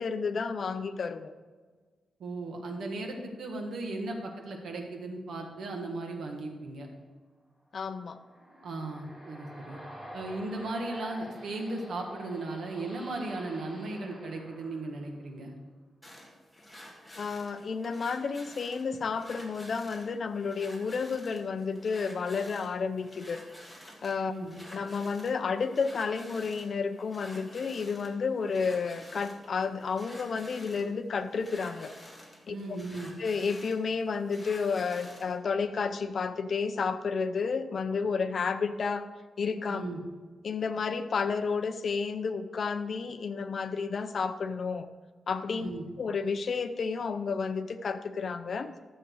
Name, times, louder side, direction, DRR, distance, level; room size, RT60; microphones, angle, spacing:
voice 1, 0.0-1.3 7.7-8.2 17.2-23.4 24.0-24.3 24.7-31.9 32.5-32.6 33.2-39.1 39.4-39.8 40.4-44.9 45.3-45.7 46.0-48.8, left 5 dB, 50° left, 11 dB, 0.6 m, -31 dB
voice 2, 2.2-6.9 8.6-9.8 10.1-15.5 24.2-24.5 32.5-33.1 39.7-40.0 45.5-45.8, right 2 dB, 75° right, 2 dB, 1.8 m, -36 dB
sound 1, 8.0-15.4, equal, 20° right, 3.8 m, -48 dB
sound 2, 16.0-35.4, equal, 5° left, 1.7 m, -50 dB
12.5 x 7.4 x 4.8 m, 1.4 s
wide cardioid pair, 155°, 0 cm